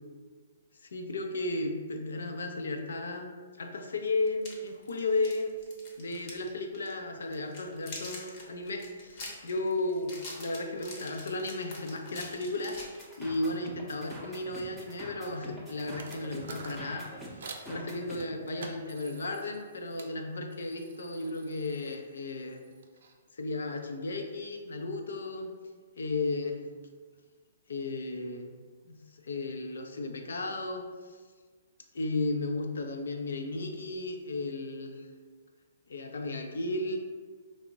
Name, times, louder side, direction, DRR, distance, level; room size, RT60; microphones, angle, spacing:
voice 1, 0.8-5.5 6.0-12.9 13.2-17.4 17.7-22.6 23.3-25.5 26.0-26.6 27.7-28.5 28.8-30.8 31.9-35.1 35.9-37.0, left 2 dB, 85° left, 4 dB, 0.5 m, -34 dB
sound 1, 4.3-6.5 6.7-6.9 7.3-13.4, left 2 dB, 40° left, 0.8 m, -45 dB
sound 2, 13.0-18.2, right 1 dB, 5° right, 0.5 m, -45 dB
sound 3, 15.8-17.7 18.2-20.1 20.5-23.1, right 4 dB, 65° right, 0.4 m, -48 dB
3.4 x 2.0 x 3.7 m, 1.5 s
hypercardioid pair, 155°, 0 cm